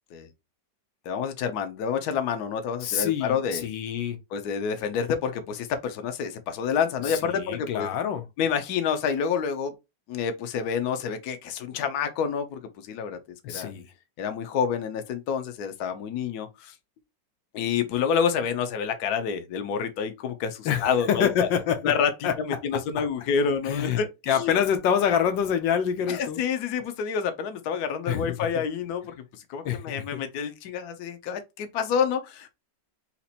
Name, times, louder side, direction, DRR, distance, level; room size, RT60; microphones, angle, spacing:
voice 1, 1.0-3.7 4.3-7.9 8.4-9.7 10.1-13.2 13.5-13.7 14.2-16.7 17.5-21.5 21.8-22.1 22.4-24.6 26.1-29.1 29.5-32.6, left 7 dB, 65° left, 1.2 m, -28 dB
voice 2, 2.8-4.2 7.1-8.2 13.4-13.9 20.6-21.9 22.2-22.4 23.7-24.0 24.3-26.4 28.1-28.3 29.6-30.2, left 8 dB, 85° left, 1.4 m, -26 dB
4.0 x 2.9 x 4.1 m
omnidirectional pair, 2.0 m